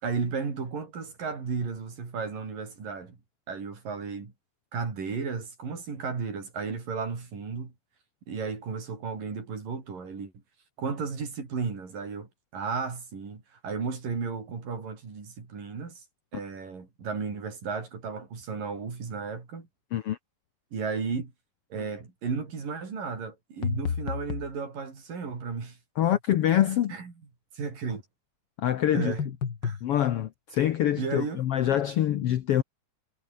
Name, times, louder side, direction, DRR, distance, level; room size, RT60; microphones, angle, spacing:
voice 1, 0.0-3.2 3.5-4.3 4.7-7.7 8.3-10.3 10.8-16.1 16.3-19.7 20.7-21.3 21.7-25.8 26.9-27.1 27.5-28.0 28.9-29.2 29.6-29.8 31.0-31.9, right 5 dB, 80° right, 6.9 m, -34 dB
sound 1, 23.6-24.5 29.0-29.8, left 6 dB, 40° left, 2.1 m, -31 dB
voice 2, 26.0-27.0 28.6-29.1 29.8-32.6, left 11 dB, 70° left, 1.4 m, -25 dB
omnidirectional pair, 3.8 m